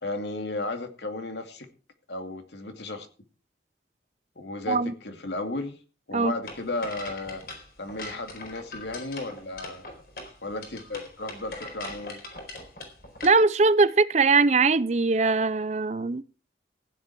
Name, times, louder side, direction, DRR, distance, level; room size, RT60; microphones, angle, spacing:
voice 1, 0.0-1.7 2.1-3.1 4.4-5.8 6.1-9.9 10.4-12.2, left 2 dB, 80° left, 2.4 m, -34 dB
sound 1, 6.4-13.3, left 2 dB, 55° left, 4.3 m, -41 dB
voice 2, 13.2-16.2, right 4 dB, 40° right, 0.6 m, -21 dB
15.0 x 10.0 x 4.7 m
head